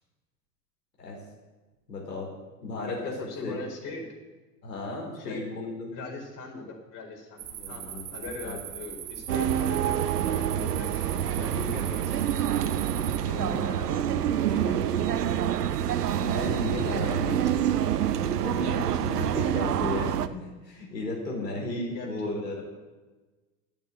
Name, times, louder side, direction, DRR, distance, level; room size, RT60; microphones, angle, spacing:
voice 1, 1.9-2.3 2.6-3.1 3.4-3.6 4.6-5.9 7.5-8.1 8.4-8.6 10.4-10.7 12.7-13.0 13.3-13.6 16.2-17.6 18.2-22.6, left 2 dB, 80° left, -2 dB, 4.5 m, -34 dB
voice 2, 2.6-4.1 5.2-5.4 5.9-7.4 7.7-12.9 13.3-15.0 16.7-17.8 21.9-22.4, left 3 dB, 40° left, 0 dB, 4.2 m, -41 dB
sound 1, 7.4-13.2, right 10 dB, 50° right, 1.8 m, -40 dB
sound 2, 9.3-20.3, right 10 dB, 70° right, 0.8 m, -27 dB
10.5 x 8.6 x 9.0 m, 1.2 s
figure-of-eight pair, 85°, 49 cm